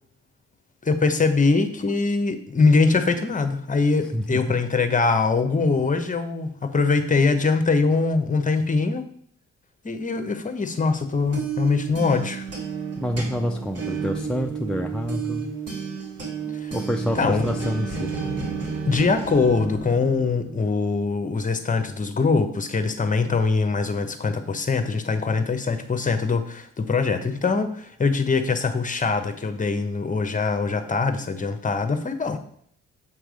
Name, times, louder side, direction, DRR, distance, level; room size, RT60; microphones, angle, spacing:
voice 1, 0.8-9.0 9.8-12.4 16.5-16.7 17.2-17.5 18.9-32.4, left 4 dB, 25° left, 9 dB, 1.0 m, -22 dB
voice 2, 4.1-4.4 13.0-15.5 16.7-18.1, equal, 5° left, 2 dB, 0.5 m, -27 dB
sound 1, 11.0-20.7, right 5 dB, 55° right, 2.4 m, -32 dB
7.5 x 3.3 x 6.3 m, 0.63 s
cardioid pair, 90°, 30 cm